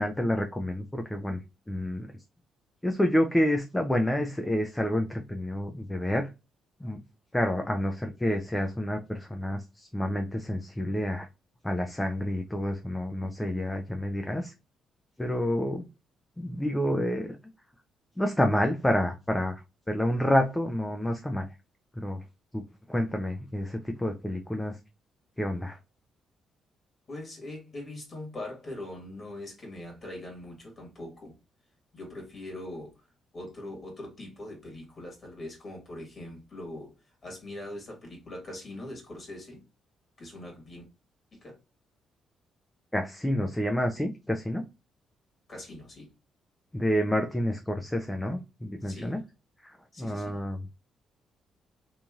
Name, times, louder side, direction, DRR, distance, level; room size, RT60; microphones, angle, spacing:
voice 1, 0.0-1.4 1.7-2.2 2.8-6.3 6.8-7.0 7.3-11.3 11.6-14.5 15.2-15.9 16.4-17.4 18.2-19.6 19.9-21.5 22.0-22.2 22.5-22.6 22.9-24.8 25.4-25.8 42.9-44.6 46.7-49.2 49.6-50.7, equal, 10° left, 0.4 m, -28 dB
voice 2, 27.1-31.3 31.9-32.9 33.3-36.9 37.2-39.6 40.2-40.8 41.3-41.5 45.5-46.1 48.8-49.2 49.9-50.4, left 1 dB, 40° left, 1.4 m, -42 dB
3.0 x 2.5 x 2.3 m
cardioid pair, 90°, 0 cm